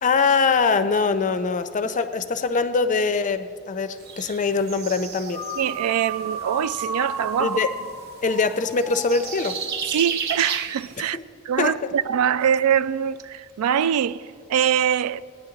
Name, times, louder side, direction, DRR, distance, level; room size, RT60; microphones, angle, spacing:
voice 1, 0.0-5.4 7.4-7.7 8.2-9.6 11.0-11.2 11.6-11.8, left 4 dB, 35° left, 0.5 m, -23 dB
sound 1, 4.0-11.1, right 6 dB, 50° right, 0.7 m, -35 dB
sound 2, 5.3-9.8, right 2 dB, ahead, 0.9 m, -33 dB
voice 2, 5.6-7.6 9.9-11.2 11.5-15.2, right 9 dB, 80° right, 0.3 m, -23 dB
17.5 x 9.7 x 3.9 m
head